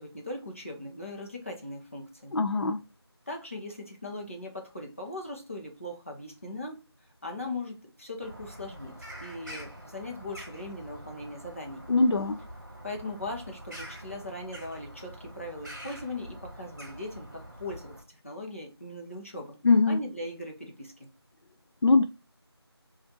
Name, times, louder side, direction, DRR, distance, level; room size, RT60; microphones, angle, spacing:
voice 1, 0.0-2.3 3.3-6.8 7.2-11.9 12.8-19.6 19.9-21.1, left 2 dB, 30° left, 0.7 m, -39 dB
voice 2, 2.3-2.8 11.9-12.4 19.6-20.0 21.8-22.0, left 3 dB, 65° left, 0.4 m, -22 dB
Bird vocalization bird call bird song, 8.2-18.0, equal, 45° right, 1.2 m, -45 dB
5.3 x 2.4 x 2.8 m
figure-of-eight pair, 175°, 14 cm